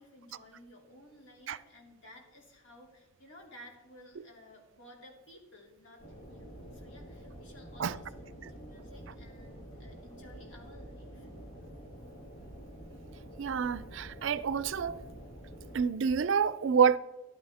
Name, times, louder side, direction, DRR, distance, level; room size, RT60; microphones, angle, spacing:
voice 1, 0.0-6.0 6.3-11.3, equal, 65° left, 2.7 m, -55 dB
sound 1, 6.0-15.8, equal, 85° left, 2.0 m, -48 dB
voice 2, 13.4-15.0 15.7-17.0, right 6 dB, 70° right, 0.4 m, -28 dB
13.0 x 11.0 x 3.5 m
head